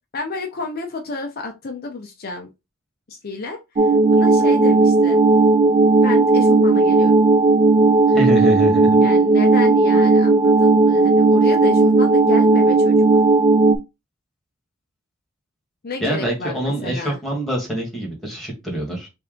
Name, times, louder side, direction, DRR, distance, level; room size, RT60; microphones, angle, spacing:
voice 1, 0.1-2.5 3.1-5.2 6.0-7.1 9.0-13.0 15.8-17.2, left 3 dB, 45° left, 4 dB, 0.6 m, -30 dB
sound 1, 3.8-13.8, right 3 dB, 35° right, 0.4 m, -15 dB
voice 2, 8.1-9.0 16.0-19.1, right 1 dB, ahead, -3 dB, 1.5 m, -25 dB
3.3 x 2.7 x 3.7 m, 0.25 s
head